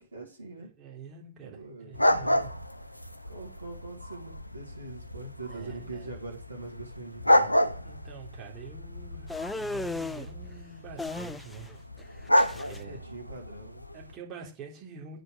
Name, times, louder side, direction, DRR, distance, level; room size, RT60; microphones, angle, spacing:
voice 1, 0.0-0.7 1.4-1.9 3.3-7.5 12.5-13.8, right 3 dB, 80° right, 1 dB, 1.9 m, -43 dB
voice 2, 0.6-2.5 5.5-6.1 7.8-11.8 12.7-13.0 13.9-15.2, right 6 dB, 35° right, -1 dB, 3.4 m, -46 dB
sound 1, 1.9-14.1, left 1 dB, 85° left, 0.5 m, -30 dB
sound 2, 9.3-10.3 11.0-11.7 12.0-12.8, left 3 dB, 5° left, 0.5 m, -35 dB
8.9 x 5.1 x 6.9 m, 0.35 s
figure-of-eight pair, 90°, 0 cm